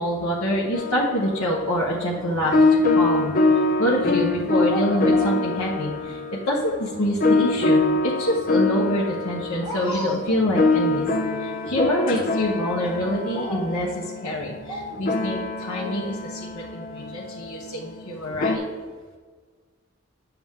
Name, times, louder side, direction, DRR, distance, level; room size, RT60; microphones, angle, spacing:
voice 1, 0.0-2.5 2.9-11.1 11.4-18.6, equal, 80° left, -6 dB, 1.1 m, -26 dB
sound 1, 0.7-18.6, left 2 dB, 40° left, 0.6 m, -24 dB
9.2 x 7.0 x 3.6 m, 1.5 s
head